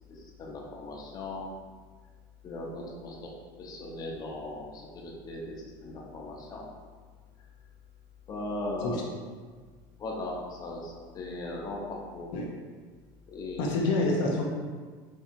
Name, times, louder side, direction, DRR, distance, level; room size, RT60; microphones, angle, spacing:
voice 1, 0.1-1.5 2.4-3.3 3.6-6.6 8.3-9.0 10.0-12.3 13.3-13.7, left 2 dB, 35° left, -2 dB, 0.8 m, -38 dB
voice 2, 13.6-14.4, left 2 dB, 70° left, -2 dB, 0.7 m, -27 dB
4.5 x 2.8 x 2.5 m, 1.5 s
supercardioid pair, 95°, 12 cm